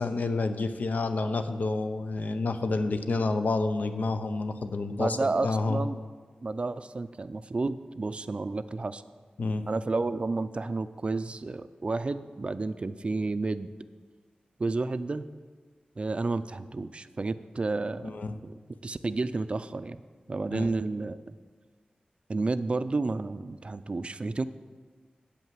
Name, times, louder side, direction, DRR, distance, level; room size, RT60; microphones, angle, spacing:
voice 1, 0.0-5.8 9.4-9.7 18.0-18.3 20.5-20.7, left 3 dB, 75° left, 9 dB, 0.6 m, -29 dB
voice 2, 5.0-6.0 6.4-9.0 9.7-13.7 14.6-15.3 16.0-18.2 18.4-18.5 18.8-20.0 20.3-21.2 22.3-24.4, right 3 dB, 40° right, 13 dB, 0.4 m, -31 dB
8.3 x 5.5 x 7.5 m, 1.5 s
wide cardioid pair, 80°, 3 cm